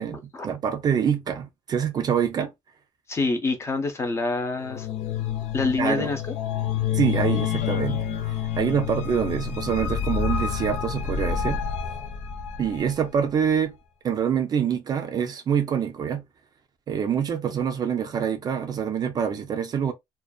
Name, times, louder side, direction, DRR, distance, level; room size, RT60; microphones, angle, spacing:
voice 1, 0.0-2.5 5.8-6.1 6.9-8.0 8.6-11.6 12.6-13.8 14.0-16.2 16.9-19.9, right 8 dB, 35° right, 0.4 m, -25 dB
voice 2, 3.1-4.9 5.5-6.2, left 3 dB, 25° left, 0.5 m, -26 dB
sound 1, 4.6-12.9, left 8 dB, 90° left, 0.5 m, -28 dB
2.5 x 2.2 x 2.3 m
cardioid pair, 170°, 11 cm